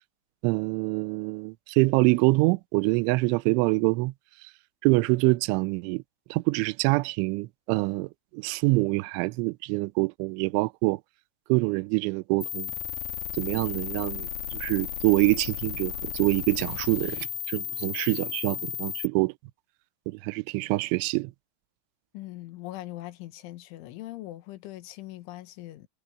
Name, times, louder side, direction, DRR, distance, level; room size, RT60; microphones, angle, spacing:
voice 1, 0.4-4.1 4.8-6.0 6.3-11.0 11.5-12.7 13.4-19.3 20.1-21.3, right 25 dB, 85° right, 2.9 m, -25 dB
sound 1, 12.4-19.1, left 9 dB, 65° left, 2.1 m, -34 dB
voice 2, 22.1-25.9, left 16 dB, 80° left, 3.8 m, -41 dB
omnidirectional pair, 5.6 m